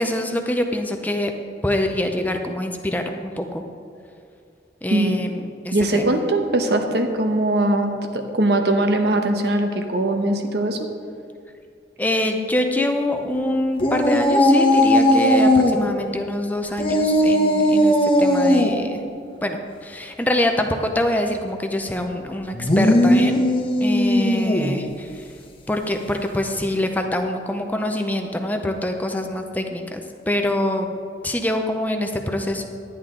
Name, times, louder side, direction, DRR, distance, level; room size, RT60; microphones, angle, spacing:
voice 1, 0.0-1.3 1.6-3.6 4.8-6.2 12.0-19.0 19.4-23.5 23.8-25.3 25.7-30.9 31.2-32.7, left 1 dB, 10° left, 4 dB, 0.6 m, -25 dB
voice 2, 5.7-10.8, right 1 dB, 65° right, 5 dB, 1.0 m, -21 dB
sound 1, 13.8-15.8 16.8-18.7 22.5-24.8, left 1 dB, 30° left, 1.0 m, -17 dB
11.0 x 10.0 x 3.8 m, 2.4 s
head